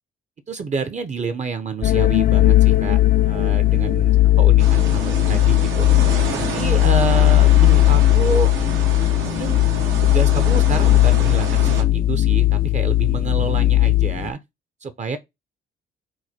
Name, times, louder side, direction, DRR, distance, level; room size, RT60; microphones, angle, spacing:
voice 1, 0.5-3.0 3.2-5.9 6.3-8.5 9.2-9.6 10.0-14.4 14.8-15.2, right 4 dB, 35° right, 0.7 m, -28 dB
sound 1, 1.8-14.3, left 15 dB, 45° left, 0.5 m, -17 dB
sound 2, 4.6-11.8, right 6 dB, 80° right, 1.1 m, -30 dB
4.7 x 2.2 x 4.3 m
cardioid pair, 90°, 20 cm